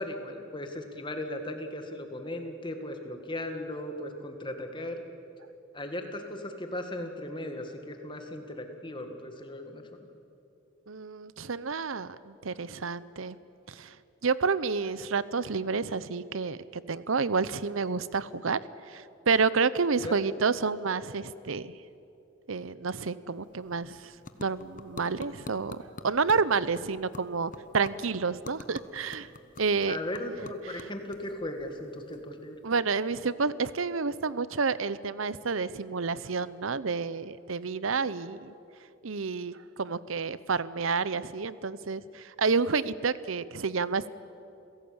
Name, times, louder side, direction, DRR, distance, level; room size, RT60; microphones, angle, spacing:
voice 1, 0.0-5.0 5.7-9.8 20.0-20.2 29.9-32.6, left 1 dB, 20° left, 5 dB, 1.9 m, -37 dB
voice 2, 10.9-13.4 13.7-14.0 14.2-18.6 18.9-21.8 22.5-24.1 24.4-29.3 29.6-30.0 32.6-38.5 39.0-44.1, right 4 dB, 75° right, 17 dB, 0.8 m, -29 dB
sound 1, 23.3-32.7, left 2 dB, 40° left, 1.0 m, -49 dB
28.0 x 17.0 x 8.8 m, 2.8 s
head